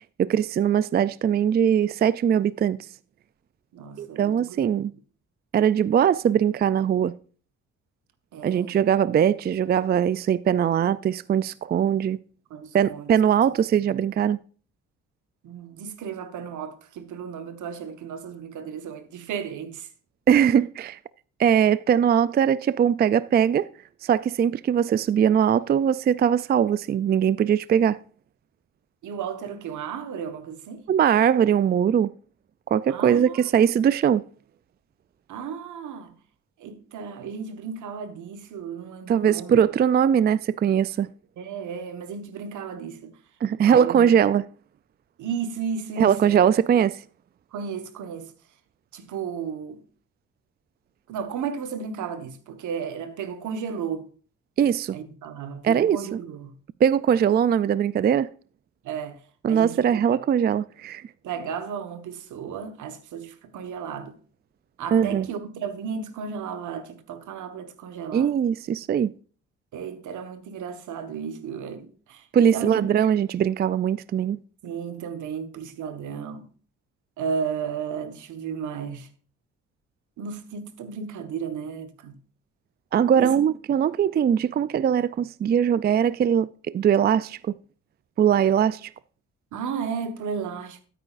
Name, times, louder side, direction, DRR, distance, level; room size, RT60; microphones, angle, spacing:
voice 1, 0.2-2.8 4.0-4.9 5.5-7.1 8.4-12.2 12.7-14.4 20.3-21.0 21.4-23.7 24.0-28.0 30.9-32.1 32.7-34.2 39.1-41.1 43.4-44.5 46.0-47.0 54.6-55.0 55.6-56.2 56.8-58.3 59.4-61.0 64.9-65.3 68.1-69.1 72.3-74.4 82.9-86.5 86.7-87.5 88.2-88.9, right 8 dB, 35° right, 0.4 m, -21 dB
voice 2, 3.7-4.6 8.3-8.7 12.5-13.1 15.4-19.9 29.0-30.8 32.9-33.7 35.3-36.1 36.6-39.6 41.4-43.1 43.6-44.1 45.2-46.4 47.5-48.3 48.9-49.8 51.1-54.1 54.9-56.5 58.8-59.2 59.5-60.0 61.2-64.2 64.8-68.3 69.7-72.2 72.5-72.8 74.6-76.4 77.2-79.1 80.2-82.2 83.2-83.4 89.5-90.8, right 6 dB, 75° right, 1.5 m, -34 dB
12.5 x 9.1 x 2.5 m
cardioid pair, 90°, 30 cm